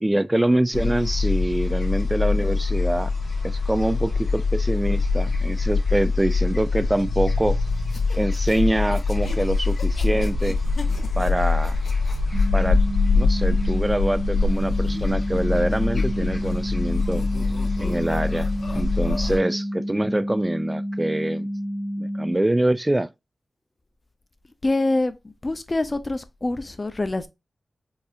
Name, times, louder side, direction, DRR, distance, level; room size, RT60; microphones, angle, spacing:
voice 1, 0.0-3.1 3.4-7.6 8.2-10.6 11.2-11.8 12.5-12.8 13.1-17.2 17.8-21.5 22.0-23.1, right 1 dB, 15° right, 0.3 m, -25 dB
sound 1, 0.7-19.4, left 3 dB, 55° left, 1.4 m, -24 dB
sound 2, 7.8-12.5 14.3-16.6 16.9-19.4, left 4 dB, 75° left, 0.7 m, -40 dB
sound 3, 12.3-22.3, equal, 85° right, 1.2 m, -30 dB
voice 2, 24.6-25.1 25.4-27.3, left 2 dB, 35° left, 0.5 m, -25 dB
4.7 x 2.7 x 2.4 m
cardioid pair, 60°, 0 cm